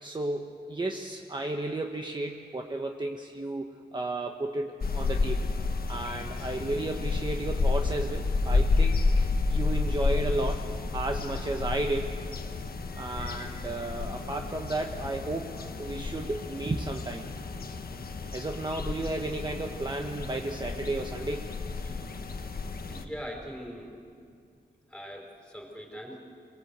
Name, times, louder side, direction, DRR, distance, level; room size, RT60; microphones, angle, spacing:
voice 1, 0.0-5.5 5.9-10.7 10.9-12.2 13.0-17.3 18.3-21.5 21.8-22.0, right 2 dB, 25° right, 3 dB, 1.1 m, -33 dB
sound 1, 4.8-23.1, left 3 dB, 60° left, 1.4 m, -31 dB
voice 2, 22.9-23.9 24.9-26.2, equal, 5° left, 0 dB, 4.6 m, -41 dB
27.0 x 21.0 x 8.1 m, 2.3 s
wide cardioid pair, 145°, 18 cm